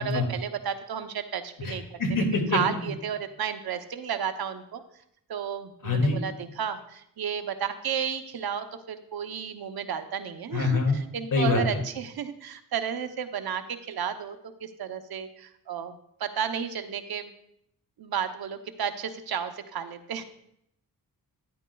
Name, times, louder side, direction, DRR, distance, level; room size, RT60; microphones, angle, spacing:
voice 1, 0.0-2.0 2.5-4.8 5.3-17.3 18.0-20.2, right 8 dB, 90° right, 8 dB, 0.8 m, -33 dB
voice 2, 1.6-2.6 5.8-6.2 10.5-11.0 11.3-11.6, left 3 dB, 65° left, 2 dB, 2.3 m, -25 dB
12.5 x 10.5 x 2.3 m, 0.75 s
wide cardioid pair, 125°, 36 cm